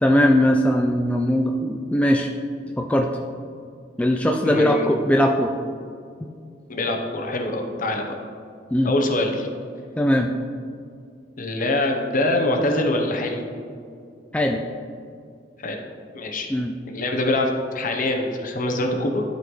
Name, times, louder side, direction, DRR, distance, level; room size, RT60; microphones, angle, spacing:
voice 1, 0.0-2.3 2.8-3.1 4.0-5.5 6.2-6.3 8.7-8.9 10.0-10.3 14.3-14.6 16.5-16.7, equal, 5° left, 2 dB, 0.3 m, -20 dB
voice 2, 4.4-4.9 6.7-8.2 8.8-9.5 11.4-13.4 15.6-15.8 16.1-16.5 16.9-19.2, left 2 dB, 50° left, 3 dB, 0.9 m, -24 dB
12.0 x 4.2 x 3.1 m, 2.3 s
head